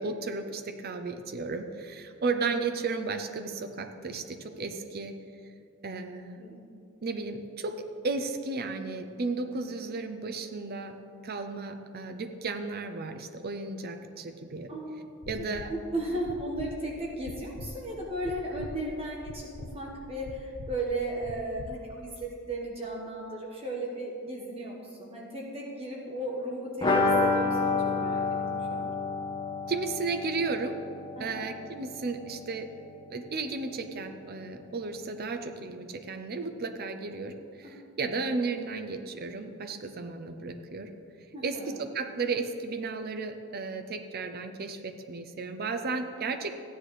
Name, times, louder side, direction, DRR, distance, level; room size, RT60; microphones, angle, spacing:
voice 1, 0.0-5.2 5.8-6.4 7.0-7.8 8.0-11.0 11.2-14.7 15.3-15.7 29.7-30.8 31.2-32.7 33.1-40.9 41.4-46.6, right 4 dB, 45° right, 7 dB, 0.6 m, -34 dB
voice 2, 14.7-15.1 15.4-28.2 28.5-28.9 31.1-31.5 37.6-37.7 38.1-38.2 41.3-41.7, right 1 dB, 25° right, -2 dB, 1.3 m, -35 dB
sound 1, 15.2-15.7 16.2-16.7 17.2-17.7 18.2-18.7 19.2-19.7 20.2-20.7 21.2-21.7 22.2-22.3, left 3 dB, 65° left, 0.6 m, -42 dB
sound 2, 26.8-32.4 32.7-32.8 33.1-33.2, left 3 dB, 20° left, 1.4 m, -29 dB
14.5 x 10.0 x 3.2 m, 2.5 s
head